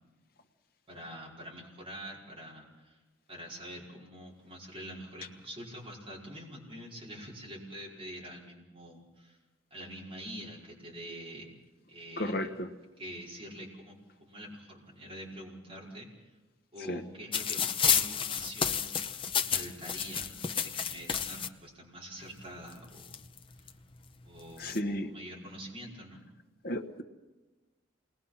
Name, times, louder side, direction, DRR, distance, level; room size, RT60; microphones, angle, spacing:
voice 1, 0.9-3.0 3.3-9.4 9.7-11.5 11.9-12.5 13.0-16.1 16.7-19.0 19.3-23.2 23.6-23.7 24.2-26.2, equal, 30° right, -4 dB, 5.0 m, -45 dB
voice 2, 12.2-12.7 16.9-17.0 24.6-25.1 26.6-27.0, left 1 dB, 50° left, 5 dB, 1.4 m, -33 dB
sound 1, 17.3-21.5 22.4-22.5 22.7-23.7 24.4-24.8, left 7 dB, 25° left, 0.8 m, -31 dB
28.0 x 20.5 x 5.7 m, 1.2 s
head